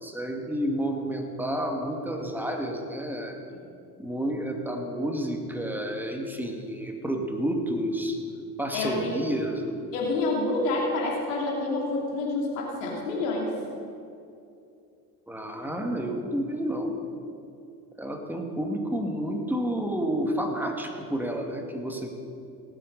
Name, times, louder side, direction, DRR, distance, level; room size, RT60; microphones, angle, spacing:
voice 1, 0.0-3.4 4.0-8.2 8.6-9.7 15.3-17.0 18.0-22.1, right 1 dB, 5° right, 2 dB, 2.2 m, -30 dB
voice 2, 8.7-9.2 9.9-13.6, left 2 dB, 75° left, -2 dB, 2.7 m, -28 dB
18.5 x 8.1 x 5.4 m, 2.6 s
figure-of-eight pair, 55°, 48 cm